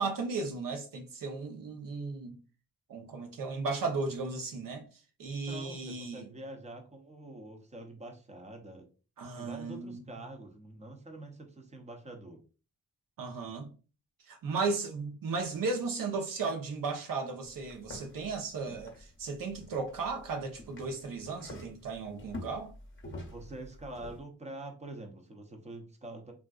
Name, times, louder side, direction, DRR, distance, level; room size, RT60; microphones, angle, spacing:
voice 1, 0.0-2.4 2.9-4.8 5.2-6.2 9.2-10.0 13.2-13.7 14.3-22.7, right 4 dB, 90° right, 0.8 m, -35 dB
voice 2, 5.4-8.9 9.3-12.4 23.3-26.3, right 1 dB, 20° right, 0.6 m, -46 dB
sound 1, 17.4-24.2, left 1 dB, 35° left, 0.6 m, -48 dB
3.6 x 2.5 x 2.3 m
wide cardioid pair, 170°, 32 cm